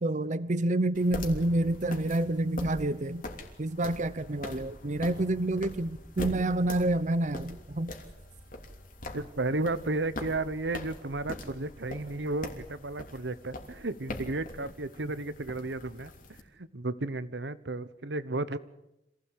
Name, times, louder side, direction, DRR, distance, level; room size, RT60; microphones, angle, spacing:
voice 1, 0.0-3.2 3.6-7.9, right 1 dB, 45° right, 14 dB, 0.7 m, -28 dB
sound 1, 0.9-16.4, left 1 dB, 50° left, 3.1 m, -42 dB
voice 2, 9.1-18.6, right 2 dB, 90° right, 14 dB, 1.1 m, -33 dB
26.0 x 16.0 x 8.5 m, 0.88 s
head